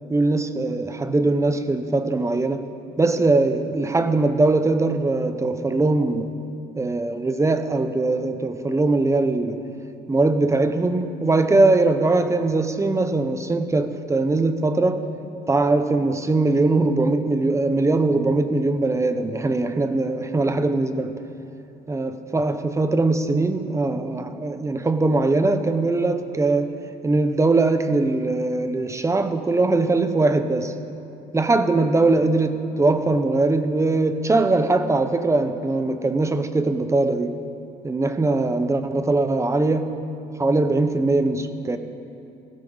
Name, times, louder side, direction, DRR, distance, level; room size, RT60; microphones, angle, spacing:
voice 1, 0.1-2.7 3.0-6.4 6.8-9.7 10.1-15.1 15.5-21.1 21.9-26.7 27.0-30.7 31.3-37.4 37.8-40.0 40.4-41.8, right 2 dB, 15° right, 9 dB, 0.9 m, -21 dB
18.0 x 16.0 x 4.0 m, 2.7 s
cardioid pair, 110°, 17 cm